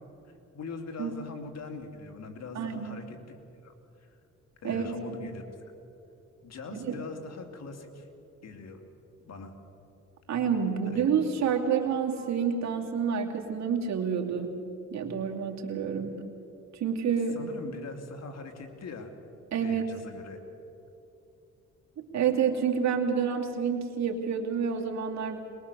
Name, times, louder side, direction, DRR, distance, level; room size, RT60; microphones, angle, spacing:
voice 1, 0.2-3.4 3.6-3.7 4.0-4.1 4.6-5.7 6.4-8.1 8.4-8.8 9.2-9.5 10.8-11.1 17.3-19.1 19.6-20.4, left 4 dB, 60° left, 5 dB, 2.7 m, -42 dB
voice 2, 2.5-3.0 4.6-5.3 6.7-7.0 10.3-14.6 14.9-16.2 16.7-17.4 19.5-19.9 22.0-25.4, right 7 dB, 65° right, 2 dB, 2.7 m, -29 dB
22.0 x 21.5 x 6.9 m, 2.8 s
cardioid pair, 90°, 30 cm